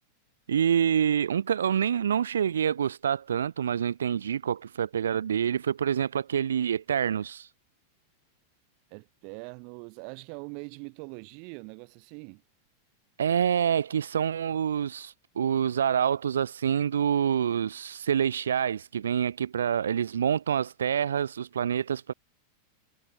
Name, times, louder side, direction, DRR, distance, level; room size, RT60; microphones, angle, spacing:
voice 1, 0.5-7.5 13.2-22.1, right 8 dB, 65° right, 1.2 m, -27 dB
voice 2, 8.9-12.4, right 40 dB or more, 45° right, 4.4 m, -42 dB
figure-of-eight pair, 90°, 0 cm